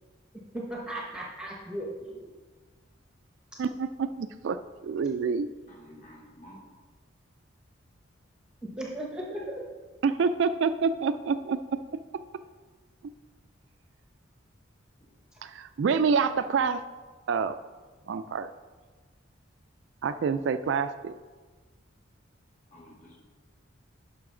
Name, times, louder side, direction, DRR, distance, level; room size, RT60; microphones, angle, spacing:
voice 1, 0.5-2.3 8.8-9.6 15.3-15.4, right 1 dB, 5° right, -3 dB, 0.9 m, -36 dB
voice 2, 3.6-5.5 10.0-11.8 15.4-16.8 17.3-17.6 18.1-18.5 20.0-21.1, right 5 dB, 65° right, 11 dB, 0.3 m, -27 dB
voice 3, 5.6-6.7 15.0-15.1 22.7-23.2, equal, 40° left, -5 dB, 2.6 m, -51 dB
10.5 x 5.8 x 3.8 m, 1.4 s
head